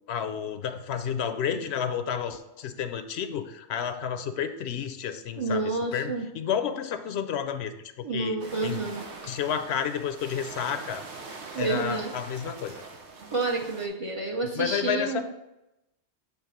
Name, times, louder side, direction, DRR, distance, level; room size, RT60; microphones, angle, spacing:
voice 1, 0.1-7.7 8.0-8.3 8.6-8.8 9.3-11.0 11.6-12.8 14.6-15.2, left 8 dB, 75° left, 9 dB, 0.8 m, -31 dB
voice 2, 5.4-6.3 8.0-9.1 11.5-12.1 13.3-15.2, right 3 dB, 35° right, 1 dB, 0.6 m, -29 dB
sound 1, 8.4-13.9, right 3 dB, 85° right, 1.2 m, -43 dB
7.2 x 3.3 x 4.9 m, 0.91 s
omnidirectional pair, 1.1 m